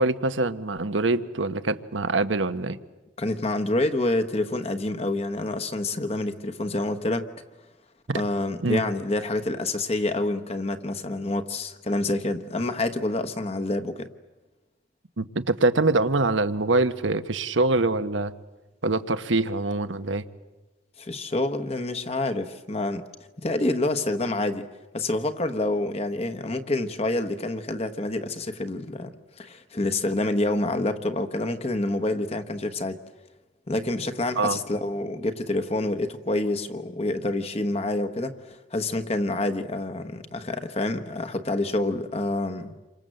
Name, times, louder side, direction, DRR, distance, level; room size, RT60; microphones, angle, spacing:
voice 1, 0.0-2.8 8.1-8.2 8.6-8.8 15.2-18.3 18.8-20.2 34.4-34.6, right 2 dB, 75° right, 1.1 m, -24 dB
voice 2, 3.2-7.3 8.1-14.1 21.0-23.0 23.4-24.7 24.9-29.1 29.4-33.0 33.7-42.7, left 2 dB, 30° left, 1.2 m, -27 dB
28.5 x 25.0 x 7.8 m
head